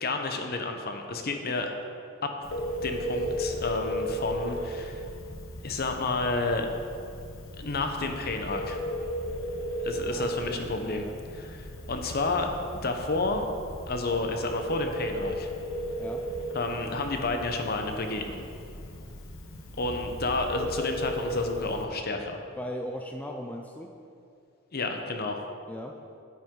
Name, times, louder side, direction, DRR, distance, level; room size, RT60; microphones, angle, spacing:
voice 1, 0.0-1.7 2.2-2.3 2.8-5.0 5.6-6.7 7.6-8.8 9.8-11.0 11.3-12.5 12.8-13.5 13.9-15.5 16.5-18.4 19.8-22.4 24.7-25.4, left 3 dB, 45° left, 5 dB, 0.8 m, -30 dB
Telephone, 2.4-21.8, equal, 70° left, 1.1 m, -35 dB
voice 2, 10.1-11.1 16.0-16.2 22.6-23.9 25.7-26.0, equal, 10° left, 2 dB, 0.4 m, -38 dB
9.2 x 9.0 x 3.8 m, 2.5 s
head